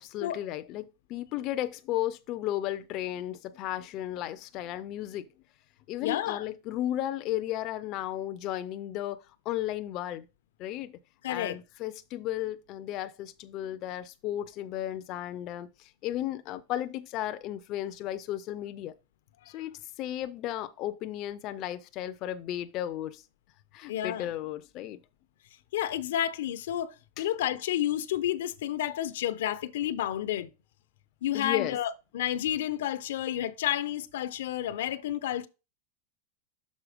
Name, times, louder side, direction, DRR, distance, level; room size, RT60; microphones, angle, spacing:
voice 1, 0.0-5.3 5.9-10.3 10.6-11.0 11.3-18.9 19.5-23.2 23.7-25.0 27.2-27.3 31.3-31.8, left 13 dB, 35° left, 0.4 m, -34 dB
voice 2, 6.0-6.4 11.2-11.6 23.9-24.3 25.7-30.5 31.2-35.5, left 11 dB, 85° left, 0.6 m, -30 dB
6.2 x 4.2 x 5.0 m
supercardioid pair, 165°, 0 cm